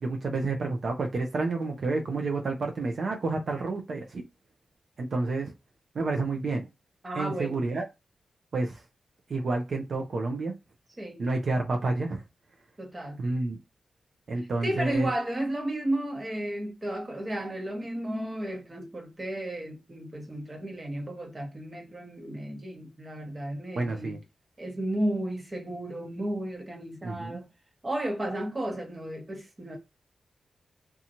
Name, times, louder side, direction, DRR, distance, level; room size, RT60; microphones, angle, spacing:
voice 1, 0.0-4.2 5.0-5.5 5.9-6.6 7.1-7.8 8.5-8.8 9.3-10.5 11.2-12.2 13.2-13.6 14.3-15.1 23.7-24.2 27.0-27.4, right 3 dB, 65° right, 0.5 m, -29 dB
voice 2, 7.0-7.6 11.0-11.2 12.8-13.2 14.4-24.2 24.6-27.5 27.8-29.8, right 1 dB, 30° right, 0.9 m, -33 dB
2.9 x 2.3 x 2.6 m
cardioid pair, 80°, 0 cm